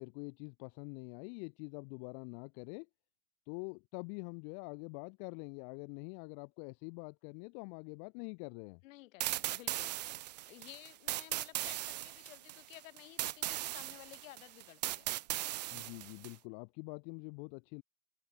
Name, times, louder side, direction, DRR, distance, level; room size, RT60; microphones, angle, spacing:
voice 1, 0.0-2.9 3.5-8.8 15.7-17.8, left 40 dB or more, 30° left, 1.0 m, -45 dB
voice 2, 8.8-15.1, left 18 dB, 50° left, 6.6 m, -55 dB
sound 1, 9.2-16.3, right 15 dB, 30° right, 0.4 m, -38 dB
open air
supercardioid pair, 150°, 48 cm